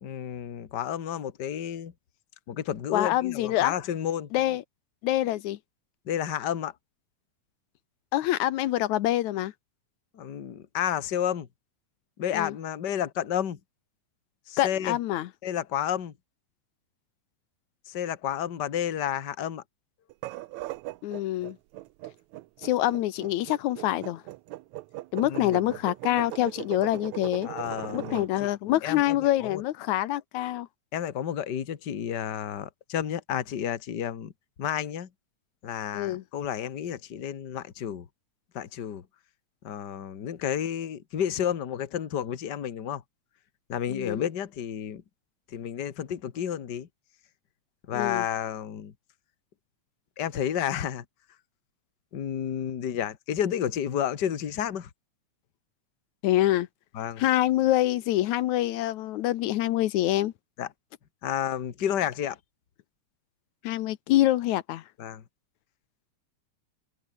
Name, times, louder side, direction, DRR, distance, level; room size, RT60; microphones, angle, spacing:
voice 1, 0.0-1.9 2.5-4.3 6.1-6.7 10.1-11.5 12.2-13.6 14.5-15.0 15.4-16.1 17.9-19.6 25.2-25.7 27.5-28.5 28.8-29.2 29.4-29.6 30.9-34.3 34.6-35.1 35.6-38.1 38.5-39.0 39.6-43.0 43.7-45.0 45.5-46.9 47.9-48.9 50.2-51.0 52.1-54.9 57.0-57.2 60.6-60.7 61.2-62.4 65.0-65.2, left 9 dB, 40° left, 1.9 m, -31 dB
voice 2, 2.9-3.7 4.3-4.6 5.0-5.6 8.1-9.5 12.3-12.5 14.6-15.3 21.0-21.6 22.6-24.2 25.1-27.5 27.9-30.7 35.9-36.2 43.9-44.2 47.9-48.3 56.2-56.7 57.2-60.3 63.6-64.8, left 14 dB, 80° left, 2.3 m, -26 dB
sound 1, 20.1-28.3, right 18 dB, 80° right, 2.0 m, -39 dB
omnidirectional pair, 3.3 m